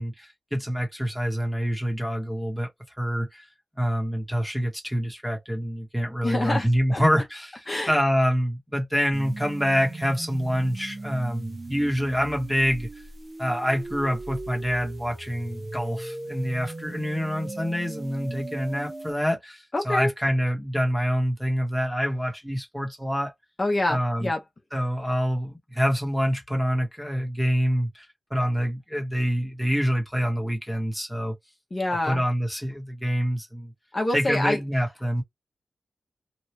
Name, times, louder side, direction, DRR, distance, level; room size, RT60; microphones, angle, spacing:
voice 1, 0.0-2.7 3.0-3.4 3.8-12.9 13.4-23.3 23.9-24.3 24.7-28.0 28.3-31.3 32.1-33.7 34.1-35.2, equal, ahead, 1.1 m, -26 dB
voice 2, 6.2-7.0 7.7-8.0 19.7-20.1 23.6-24.4 31.7-32.2 33.9-34.6, left 2 dB, 35° left, 0.9 m, -26 dB
sound 1, 9.1-19.1, right 2 dB, 40° right, 0.9 m, -38 dB
3.0 x 2.4 x 3.2 m
wide cardioid pair, 105°, 0 cm